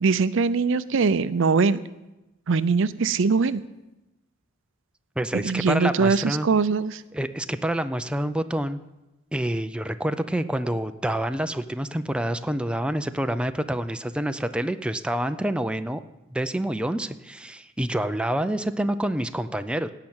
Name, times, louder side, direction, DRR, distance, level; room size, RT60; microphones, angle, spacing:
voice 1, 0.0-1.8 2.5-3.6 5.3-7.0, right 4 dB, 65° right, 16 dB, 0.5 m, -22 dB
voice 2, 5.2-6.5 7.1-8.8 9.3-16.0 16.3-19.9, right 1 dB, 5° right, 9 dB, 0.4 m, -27 dB
17.0 x 5.8 x 8.8 m, 1.0 s
head